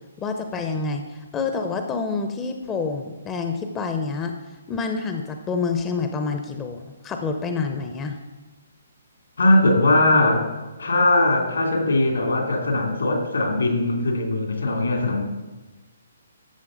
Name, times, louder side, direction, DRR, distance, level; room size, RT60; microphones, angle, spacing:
voice 1, 0.2-4.3 4.7-8.2, left 4 dB, 15° left, 5 dB, 0.7 m, -27 dB
voice 2, 9.4-10.5 10.8-15.2, left 2 dB, 70° left, 1 dB, 2.7 m, -20 dB
12.5 x 7.2 x 3.9 m, 1.2 s
figure-of-eight pair, 130°, 0 cm